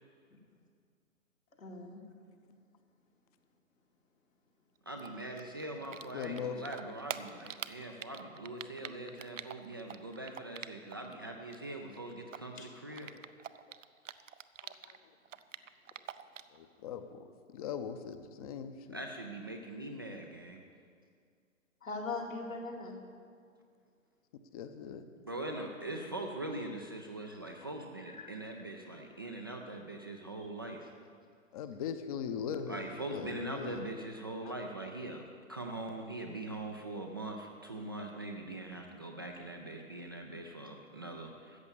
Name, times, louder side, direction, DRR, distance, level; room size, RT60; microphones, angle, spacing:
voice 1, 1.6-2.0 12.6-12.7 21.8-23.0 25.8-26.2 27.6-27.7 28.1-28.3, left 3 dB, 80° left, -1 dB, 2.5 m, -41 dB
voice 2, 4.9-13.1 18.9-20.6 25.3-30.9 32.7-35.2 35.5-41.6, right 2 dB, 20° right, 1 dB, 0.3 m, -42 dB
Typing, 5.0-6.4 6.6-11.1 11.4-15.0 15.2-16.6, right 9 dB, 65° right, 0.7 m, -44 dB
voice 3, 6.1-6.6 14.6-15.0 16.5-19.0 24.5-25.1 27.6-27.7 31.5-33.8 34.4-34.5, left 7 dB, 30° left, 10 dB, 0.7 m, -40 dB
14.0 x 8.5 x 7.0 m, 2.1 s
figure-of-eight pair, 120°, 40 cm